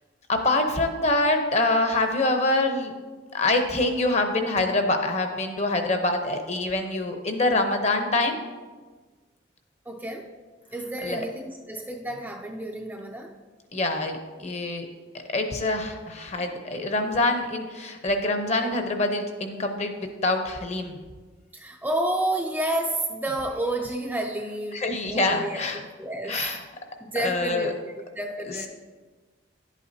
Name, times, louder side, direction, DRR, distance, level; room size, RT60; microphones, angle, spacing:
voice 1, 0.3-2.9 3.3-8.4 11.0-11.2 13.7-14.9 15.3-21.0 24.7-25.8 26.3-26.6 27.1-27.7 28.5-28.7, left 2 dB, 35° left, 5 dB, 0.8 m, -25 dB
voice 2, 9.9-10.3 10.7-13.4 16.5-16.6 21.5-26.4 27.0-28.7, right 1 dB, 10° right, 1 dB, 0.4 m, -30 dB
11.0 x 8.3 x 2.7 m, 1.4 s
head